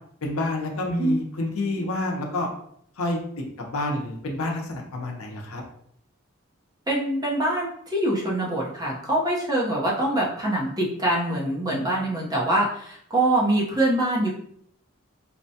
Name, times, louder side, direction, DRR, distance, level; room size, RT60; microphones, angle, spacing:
voice 1, 0.2-2.5 3.0-3.2 3.6-5.6, left 2 dB, 80° left, 1 dB, 0.7 m, -28 dB
voice 2, 6.9-14.3, right 1 dB, 20° right, -4 dB, 0.7 m, -24 dB
4.1 x 2.2 x 2.7 m, 0.67 s
head